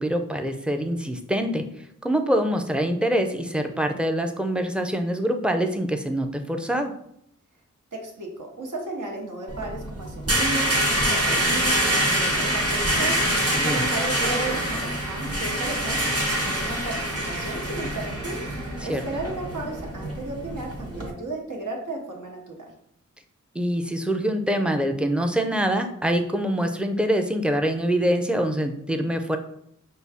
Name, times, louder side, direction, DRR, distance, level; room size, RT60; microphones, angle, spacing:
voice 1, 0.0-1.6 2.0-6.9 13.5-13.9 18.9-19.0 23.5-29.4, equal, 5° right, 5 dB, 0.4 m, -25 dB
voice 2, 7.9-10.7 11.0-13.2 13.6-16.1 16.5-18.4 18.8-22.7, right 2 dB, 80° right, 0 dB, 1.1 m, -34 dB
sound 1, 9.5-21.1, right 1 dB, 50° right, 1.1 m, -25 dB
5.2 x 2.3 x 3.4 m, 0.72 s
wide cardioid pair, 60°, 30 cm